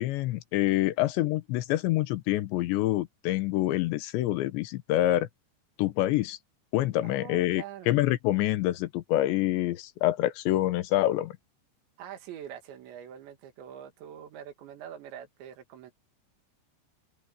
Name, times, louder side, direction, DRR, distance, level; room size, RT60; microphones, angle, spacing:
voice 1, 0.0-5.3 5.8-6.4 6.7-11.3, left 15 dB, 85° left, 3.3 m, -26 dB
voice 2, 7.0-7.9 12.0-15.9, right 9 dB, 85° right, 4.4 m, -44 dB
omnidirectional pair, 5.0 m